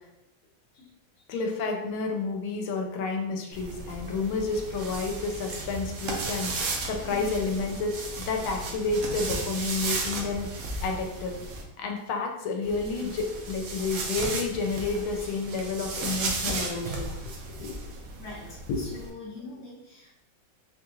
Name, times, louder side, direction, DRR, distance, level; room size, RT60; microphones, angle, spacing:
voice 1, 1.3-10.5 10.8-11.4 11.8-17.1 17.6-17.8 18.7-18.8, left 4 dB, 85° left, 2 dB, 1.4 m, -30 dB
sound 1, 3.5-11.6 12.6-19.1, right 3 dB, 70° right, 0.8 m, -35 dB
voice 2, 18.2-20.1, left 3 dB, 55° left, -5 dB, 0.7 m, -43 dB
4.1 x 2.4 x 3.0 m, 0.89 s
omnidirectional pair, 2.2 m